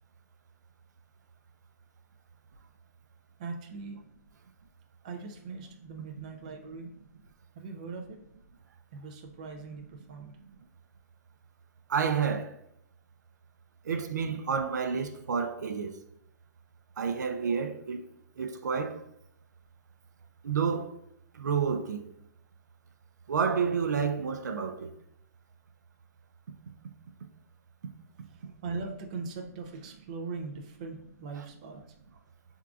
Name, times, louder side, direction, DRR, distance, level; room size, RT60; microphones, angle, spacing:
voice 1, 3.4-4.0 5.0-6.9 7.6-8.2 8.9-10.3 28.6-31.8, right 4 dB, 25° right, 0.4 m, -40 dB
voice 2, 11.9-12.5 13.9-15.9 17.0-18.0 18.4-19.0 20.4-21.0 21.3-22.0 23.3-24.9, right 6 dB, 85° right, 0.5 m, -29 dB
5.8 x 3.6 x 2.4 m
hypercardioid pair, 175°, 9 cm